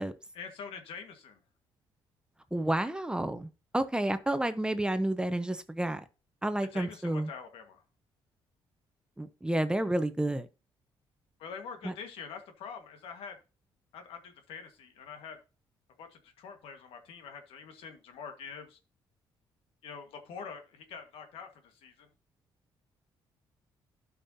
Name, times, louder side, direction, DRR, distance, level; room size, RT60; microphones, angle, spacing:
voice 1, 0.3-1.4 6.7-7.8 11.4-13.4 13.9-15.4 16.0-18.8 19.8-22.1, left 6 dB, 85° left, 1.6 m, -45 dB
voice 2, 2.5-3.5 3.7-6.0 6.4-7.3 9.2-10.5 11.8-11.9, right 1 dB, 10° right, 0.8 m, -30 dB
12.0 x 5.6 x 2.8 m
cardioid pair, 85°, 9 cm